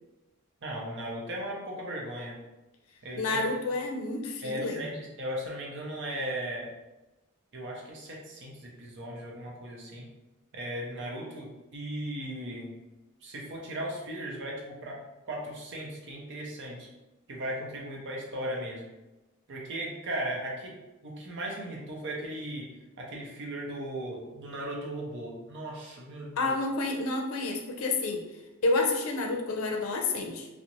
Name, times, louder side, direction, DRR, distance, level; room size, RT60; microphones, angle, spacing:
voice 1, 0.6-2.4 3.0-3.5 4.4-6.7 7.5-10.1 10.5-12.7 13.2-15.0 15.3-16.9 17.3-18.9 19.5-20.7 21.0-22.7 23.0-26.5, right 1 dB, 60° right, -2 dB, 0.6 m, -37 dB
voice 2, 3.2-4.8 26.4-28.2 28.6-30.5, left 3 dB, 85° left, 2 dB, 0.4 m, -29 dB
2.5 x 2.0 x 2.9 m, 1.0 s
head